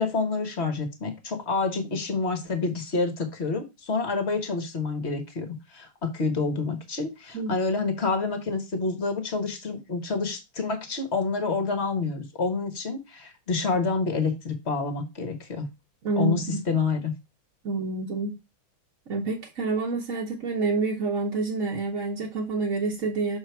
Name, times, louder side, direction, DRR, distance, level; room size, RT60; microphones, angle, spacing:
voice 1, 0.0-15.7 16.2-17.1, left 4 dB, 35° left, 6 dB, 1.5 m, -28 dB
voice 2, 16.0-16.6 17.6-18.4 19.1-23.4, right 3 dB, 45° right, -2 dB, 1.4 m, -28 dB
6.7 x 4.3 x 4.6 m, 0.24 s
omnidirectional pair, 2.3 m